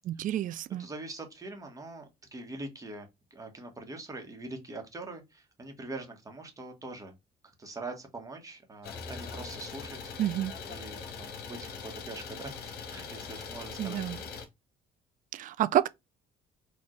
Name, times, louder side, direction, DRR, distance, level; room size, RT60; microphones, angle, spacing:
voice 1, 0.0-0.9 10.2-10.5 13.8-14.2 15.3-15.9, right 12 dB, 50° right, 0.4 m, -29 dB
voice 2, 0.8-7.1 7.6-10.1 10.7-14.0, right 2 dB, 20° right, 1.3 m, -43 dB
Idling, 8.8-14.5, left 5 dB, 70° left, 1.2 m, -41 dB
4.4 x 2.6 x 3.1 m
cardioid pair, 110°, 17 cm